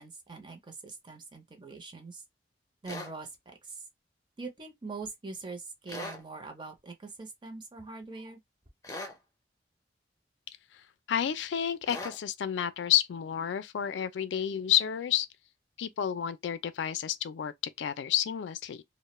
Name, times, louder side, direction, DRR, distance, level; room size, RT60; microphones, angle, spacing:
voice 1, 0.0-2.2 2.8-3.8 4.4-8.4, right 4 dB, 25° right, 0.5 m, -43 dB
sound 1, 2.8-3.1 5.9-6.2 8.8-9.2 11.9-12.2, left 2 dB, 20° left, 0.5 m, -39 dB
voice 2, 11.1-15.3 15.8-18.8, left 10 dB, 85° left, 0.3 m, -30 dB
2.2 x 2.0 x 3.0 m
head